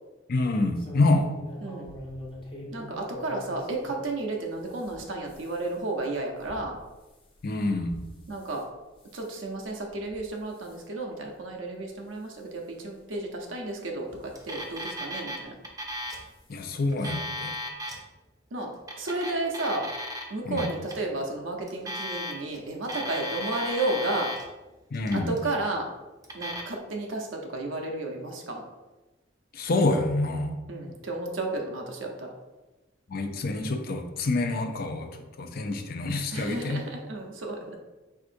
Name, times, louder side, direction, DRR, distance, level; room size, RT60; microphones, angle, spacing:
voice 1, 0.3-1.3 7.4-8.0 16.5-17.5 20.5-20.7 24.9-25.3 29.5-30.5 33.1-35.1 35.4-36.8, left 2 dB, 50° left, 5 dB, 0.5 m, -27 dB
sound 1, 0.7-4.0 4.5-8.6 9.0-9.4 9.9-10.2 10.5-10.8 11.4-11.5 11.9-12.0 13.1-13.2 14.0-14.8 16.0-16.1 16.5-16.6 16.9-17.0, left 1 dB, 25° left, 0.8 m, -44 dB
voice 2, 1.6-1.9 2.7-6.8 8.3-8.7 9.1-15.5 18.5-19.9 20.3-24.3 25.1-25.9 26.3-28.6 30.7-32.3 36.3-37.8, right 2 dB, 80° right, 1 dB, 0.8 m, -32 dB
Alarm, 14.4-15.4 15.6-16.2 16.9-18.0 18.8-20.2 20.6-20.9 21.7-22.6 22.8-24.4 24.9-25.4 26.2-26.6, equal, 20° right, 0.6 m, -35 dB
4.7 x 3.7 x 2.6 m, 1.1 s
head